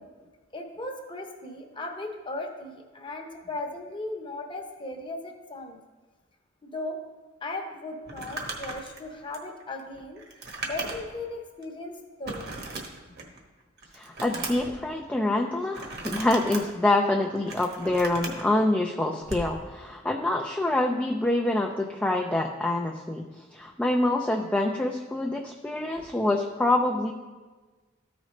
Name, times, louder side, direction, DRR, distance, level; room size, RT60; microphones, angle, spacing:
voice 1, 0.0-5.8 6.6-7.0 7.4-10.2 10.6-12.5 13.2-13.3 26.0-26.1, left 2 dB, 25° left, 2 dB, 0.9 m, -37 dB
Crumpling crinkling, 8.0-11.2 11.6-11.7 12.2-13.4 13.8-14.7 15.7-16.6 17.2-18.4 19.2-19.5, right 3 dB, 55° right, 1.2 m, -37 dB
voice 2, 13.9-27.1, left 2 dB, 5° left, 1 dB, 0.4 m, -26 dB
13.5 x 5.0 x 3.2 m, 1.3 s
head